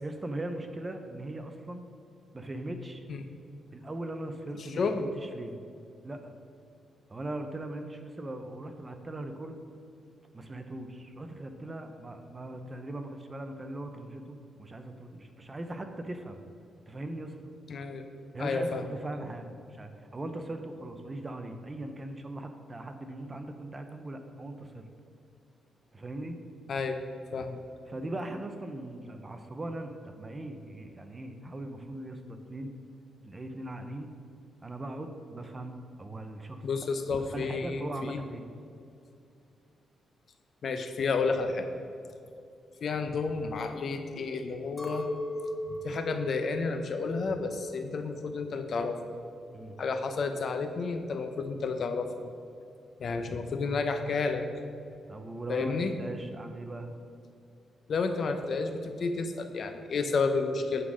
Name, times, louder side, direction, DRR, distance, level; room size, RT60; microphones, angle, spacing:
voice 1, 0.0-1.8 2.3-3.0 3.7-5.6 6.0-6.3 7.1-9.6 10.3-16.4 16.9-17.4 18.3-24.9 25.9-26.4 27.9-32.7 33.2-34.1 34.6-36.8 37.3-38.5 49.5-49.8 55.1-56.9, right 1 dB, 25° right, 6 dB, 0.7 m, -39 dB
voice 2, 4.7-5.1 17.7-18.0 18.4-18.8 26.7-27.0 27.3-27.6 36.6-38.2 40.6-41.7 42.8-45.1 45.8-49.0 49.8-52.3 53.0-54.4 55.5-55.9 57.9-60.8, left 4 dB, 55° left, 7 dB, 0.7 m, -31 dB
Chink clink, 44.8-49.1 49.4-50.2, equal, 15° left, 0.9 m, -39 dB
9.5 x 3.9 x 6.3 m, 2.5 s
cardioid pair, 110°, 0 cm